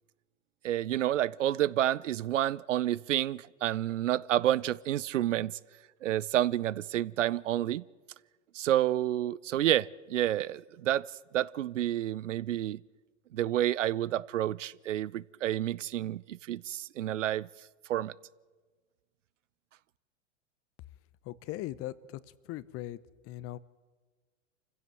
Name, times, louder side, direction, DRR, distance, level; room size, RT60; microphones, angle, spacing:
voice 1, 0.6-5.6 6.0-7.8 8.5-12.8 13.3-17.5 17.9-18.1, right 12 dB, 80° right, 0.6 m, -29 dB
voice 2, 21.2-23.6, left 15 dB, 40° left, 0.9 m, -40 dB
25.5 x 15.5 x 7.8 m
hypercardioid pair, 100°, 37 cm